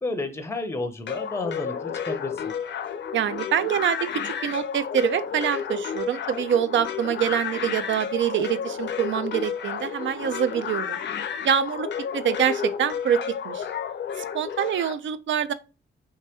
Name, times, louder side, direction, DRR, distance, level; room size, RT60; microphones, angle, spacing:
voice 1, 0.0-2.5, left 2 dB, 15° left, 0.5 m, -31 dB
sound 1, 1.1-14.9, left 7 dB, 60° left, 0.5 m, -31 dB
voice 2, 3.1-11.0 11.4-11.9 12.1-13.7 14.2-15.5, right 9 dB, 70° right, 0.4 m, -25 dB
3.2 x 2.9 x 3.3 m
cardioid pair, 100°, 20 cm